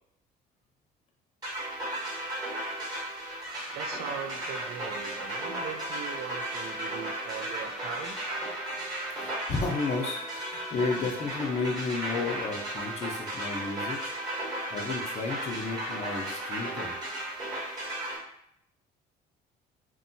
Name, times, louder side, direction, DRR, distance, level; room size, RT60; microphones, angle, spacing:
sound 1, 1.4-18.2, right 1 dB, 25° right, 1.1 m, -35 dB
voice 1, 3.7-8.3, right 8 dB, 70° right, 6 dB, 0.4 m, -40 dB
voice 2, 9.1-16.9, left 4 dB, 40° left, 1 dB, 0.6 m, -33 dB
2.7 x 2.2 x 2.7 m, 0.73 s
cardioid pair, 110°, 17 cm